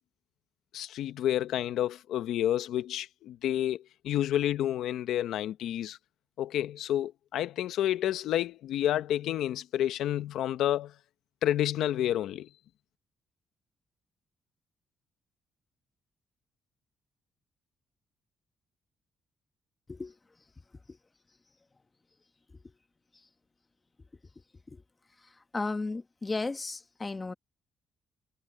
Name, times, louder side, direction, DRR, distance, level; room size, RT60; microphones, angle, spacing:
voice 1, 0.7-6.0 6.4-10.9 11.4-12.5, left 12 dB, 80° left, 1.0 m, -29 dB
voice 2, 25.5-27.3, left 3 dB, 25° left, 1.3 m, -34 dB
cardioid pair, 90°, 0 cm